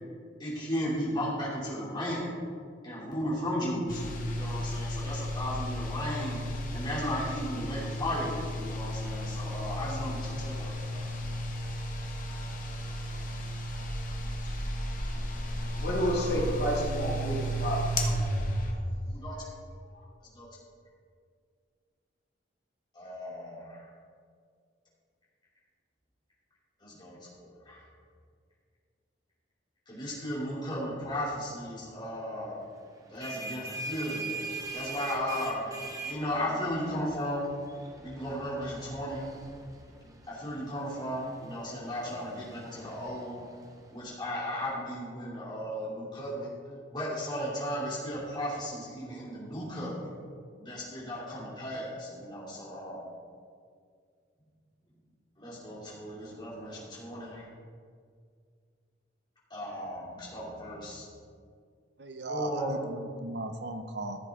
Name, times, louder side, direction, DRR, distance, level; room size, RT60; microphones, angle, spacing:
voice 1, 0.4-2.4 2.8-11.0 19.1-19.3 20.3-20.5 22.9-23.8 26.8-27.8 29.9-32.6 33.1-34.4 34.7-35.6 36.1-37.4 38.0-39.2 40.3-43.4 43.9-46.5 46.9-50.1 50.6-53.1 55.4-57.4 59.5-61.1 62.3-62.8, equal, 25° left, -6 dB, 2.8 m, -35 dB
sound 1, 3.9-18.7, equal, 45° left, 1.3 m, -34 dB
voice 2, 15.8-18.1 19.9-20.0, equal, 65° left, -3 dB, 2.3 m, -30 dB
sound 2, 32.9-44.3, right 3 dB, 20° right, 0.9 m, -43 dB
voice 3, 62.0-64.2, right 2 dB, 65° right, 7 dB, 0.8 m, -37 dB
14.5 x 7.4 x 3.6 m, 2.2 s
head